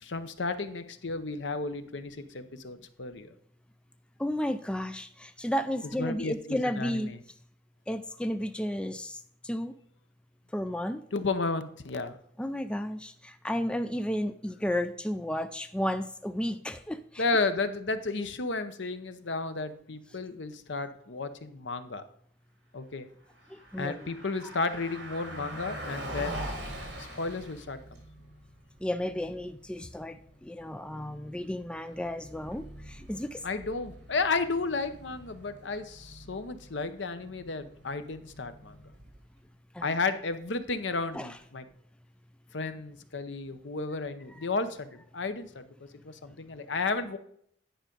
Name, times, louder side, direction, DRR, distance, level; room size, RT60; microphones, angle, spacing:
voice 1, 0.0-3.3 6.0-7.2 11.1-12.1 17.2-22.0 22.7-23.1 23.8-26.5 27.2-28.0 33.4-38.8 39.8-41.6 42.5-45.6 46.0-47.2, left 3 dB, 75° left, 10 dB, 0.8 m, -33 dB
voice 2, 4.2-7.1 7.9-9.7 10.5-11.0 12.4-17.2 23.5-24.1 28.8-33.4 39.7-39.9 41.1-41.4, left 1 dB, 5° left, 10 dB, 0.3 m, -33 dB
Car passing by, 23.3-39.4, right 1 dB, 60° right, 3.1 m, -44 dB
10.0 x 5.1 x 5.2 m, 0.67 s
head